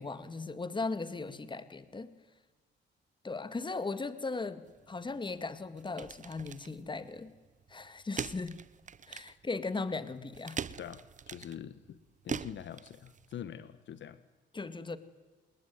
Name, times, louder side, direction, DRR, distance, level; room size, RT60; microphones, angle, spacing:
voice 1, 0.0-2.1 3.2-7.3 7.7-8.6 9.1-10.6 14.5-15.0, left 3 dB, 25° left, 13 dB, 2.1 m, -38 dB
sound 1, 4.7-13.4, right 7 dB, 40° right, 0.9 m, -44 dB
voice 2, 11.3-12.0 12.2-14.2, left 9 dB, 65° left, 14 dB, 1.3 m, -44 dB
29.5 x 20.5 x 9.6 m, 1.3 s
cardioid pair, 90°, 20 cm